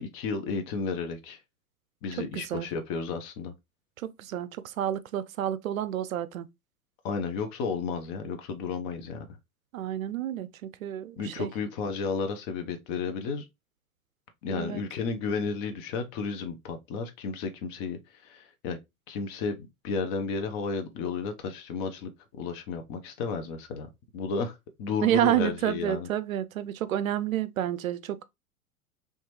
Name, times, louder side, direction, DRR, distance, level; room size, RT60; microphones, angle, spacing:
voice 1, 0.0-1.4 2.0-3.5 7.0-9.3 11.2-13.4 14.4-18.8 19.1-23.9 24.1-26.1, left 5 dB, 20° left, 0.3 m, -33 dB
voice 2, 2.3-2.7 4.0-6.5 9.7-11.5 14.5-14.8 25.0-28.2, right 11 dB, 70° right, 0.5 m, -29 dB
3.2 x 2.8 x 3.1 m
figure-of-eight pair, 95°, 44 cm